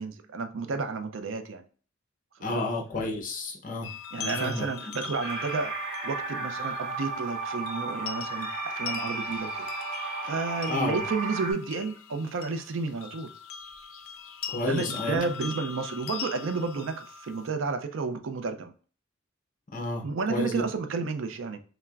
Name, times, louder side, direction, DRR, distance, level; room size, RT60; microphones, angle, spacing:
voice 1, 0.0-1.7 2.5-2.6 4.1-9.7 10.0-13.3 14.5-18.7 20.0-21.6, right 4 dB, 70° right, 0.4 m, -31 dB
voice 2, 2.4-3.9 4.2-4.6 10.7-11.0 14.5-15.2 19.7-20.0 20.3-20.7, left 2 dB, 40° left, 0.7 m, -31 dB
sound 1, 3.8-17.5, left 7 dB, 80° left, 0.4 m, -41 dB
sound 2, 5.2-11.5, right 3 dB, 55° right, 0.9 m, -34 dB
5.5 x 2.1 x 2.4 m
head